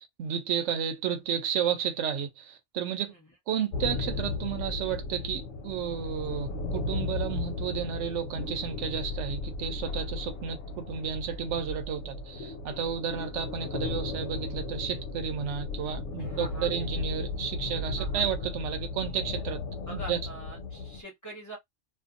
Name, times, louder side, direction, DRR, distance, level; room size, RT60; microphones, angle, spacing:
voice 1, 0.0-3.1 3.5-19.6 19.9-20.2, right 8 dB, 75° right, 0.9 m, -32 dB
sound 1, 3.7-21.0, left 3 dB, 70° left, 0.8 m, -35 dB
voice 2, 16.2-16.7 18.0-18.3 19.9-21.6, right 1 dB, 15° left, 0.8 m, -44 dB
2.6 x 2.5 x 2.5 m
omnidirectional pair, 1.3 m